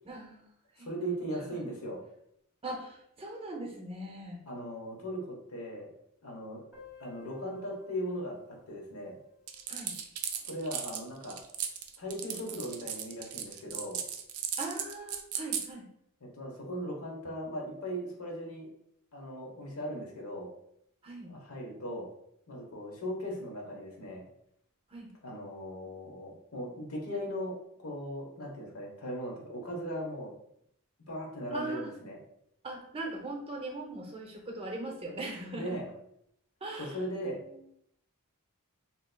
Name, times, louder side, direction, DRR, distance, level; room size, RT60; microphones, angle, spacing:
voice 1, 0.0-0.5 0.8-1.6 2.6-4.4 9.7-10.0 14.6-15.9 21.0-21.3 24.9-25.1 31.5-31.9 32.6-35.8 36.6-37.0 37.2-37.6, right 2 dB, 25° right, 1 dB, 0.6 m, -40 dB
voice 2, 0.8-2.0 4.5-5.9 6.2-6.6 7.0-9.1 10.5-11.4 12.0-14.0 16.2-18.7 19.1-20.5 21.3-22.1 22.5-24.2 25.2-30.3 31.1-32.2 35.5-35.9 36.8-37.4, equal, 75° left, -1 dB, 1.0 m, -38 dB
Piano, 6.7-12.1 12.3-12.4 12.7-12.8 13.1-13.2 14.0-14.2, left 5 dB, 5° right, 1.0 m, -59 dB
sound 1, 9.5-15.7, right 9 dB, 75° right, 0.4 m, -36 dB
4.1 x 2.8 x 2.2 m, 0.74 s
head